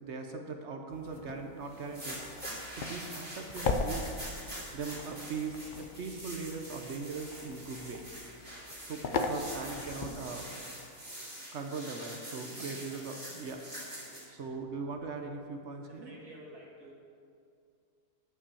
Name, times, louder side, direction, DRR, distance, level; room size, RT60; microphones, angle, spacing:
voice 1, 0.0-2.2 2.7-4.1 4.7-8.1 8.8-10.5 11.4-13.6 14.3-16.1, right 4 dB, 55° right, 4 dB, 0.9 m, -40 dB
sound 1, 0.9-10.5, left 3 dB, 60° left, 0.5 m, -39 dB
sound 2, 1.7-14.2, right 1 dB, 20° right, 2.9 m, -45 dB
voice 2, 12.7-13.0 15.9-16.9, right 1 dB, 80° right, -4 dB, 2.5 m, -51 dB
9.7 x 5.6 x 6.9 m, 2.4 s
omnidirectional pair, 1.6 m